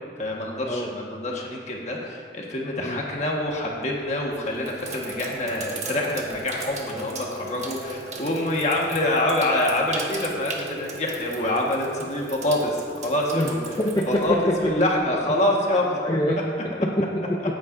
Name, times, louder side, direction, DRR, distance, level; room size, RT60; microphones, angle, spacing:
voice 1, 0.2-13.6 14.1-14.3 14.6-16.2, left 1 dB, 40° left, -2 dB, 1.5 m, -26 dB
Sink (filling or washing), 3.2-3.6 4.2-15.1, right 3 dB, 40° right, 1.1 m, -37 dB
voice 2, 13.8-14.9 16.0-17.4, equal, 20° left, 0 dB, 0.5 m, -25 dB
16.0 x 8.9 x 2.6 m, 2.2 s
head